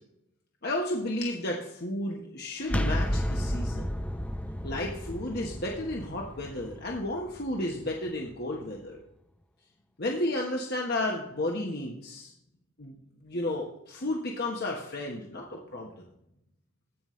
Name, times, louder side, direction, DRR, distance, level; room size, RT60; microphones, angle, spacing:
voice 1, 0.6-3.9 4.6-9.0 10.0-12.3 12.8-12.9 13.2-16.0, left 1 dB, 55° left, -1 dB, 1.2 m, -32 dB
sound 1, 2.7-8.4, equal, 5° left, 0.6 m, -32 dB
15.0 x 5.4 x 3.2 m, 0.80 s
head